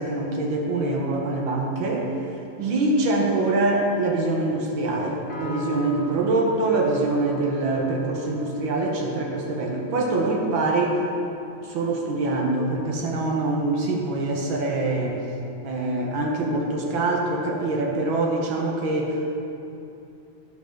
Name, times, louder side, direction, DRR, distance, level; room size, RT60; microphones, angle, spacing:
voice 1, 0.0-2.1 2.6-11.0 11.6-15.2 15.6-19.4, right 2 dB, 70° right, 0 dB, 1.9 m, -24 dB
Piano, 5.3-8.9, equal, 50° left, 1.4 m, -40 dB
10.5 x 6.0 x 5.2 m, 2.8 s
omnidirectional pair, 2.3 m